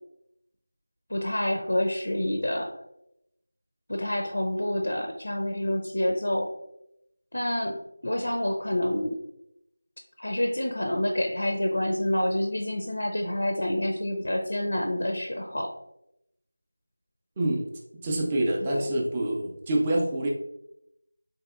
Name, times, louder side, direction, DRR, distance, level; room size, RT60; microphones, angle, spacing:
voice 1, 1.1-2.8 3.9-6.5 7.3-9.2 10.2-15.7 18.6-18.9, left 1 dB, 85° left, 3 dB, 0.4 m, -28 dB
voice 2, 17.4-17.7 18.0-20.3, right 1 dB, 15° right, -1 dB, 0.4 m, -26 dB
3.6 x 2.7 x 2.4 m, 0.80 s
figure-of-eight pair, 175°, 0 cm